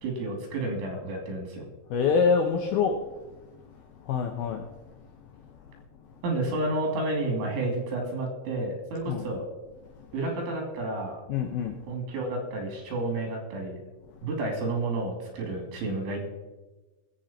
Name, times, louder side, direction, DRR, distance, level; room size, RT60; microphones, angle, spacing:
voice 1, 0.0-1.7 6.2-9.5 10.1-11.2 11.9-13.8 14.2-16.3, right 2 dB, 85° right, 2 dB, 5.2 m, -30 dB
voice 2, 1.9-3.0 3.3-3.4 3.7-4.6 9.1-9.3 11.3-11.7, left 6 dB, 80° left, 3 dB, 2.2 m, -26 dB
21.0 x 8.0 x 4.4 m, 1.2 s
omnidirectional pair, 5.4 m